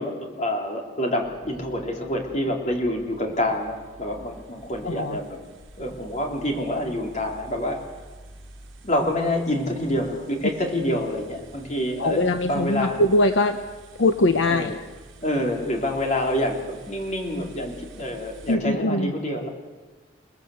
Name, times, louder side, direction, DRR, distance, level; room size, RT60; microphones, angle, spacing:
voice 1, 0.0-5.4 5.8-7.8 8.8-13.0 14.5-14.8 15.2-19.5, left 1 dB, 35° left, 1 dB, 3.8 m, -27 dB
sound 1, 1.2-18.6, right 1 dB, 70° right, 4.8 m, -48 dB
voice 2, 4.8-5.2 12.0-13.6 14.0-14.8 18.5-19.1, left 2 dB, 65° left, 8 dB, 1.0 m, -22 dB
29.0 x 19.5 x 8.1 m, 1.3 s
head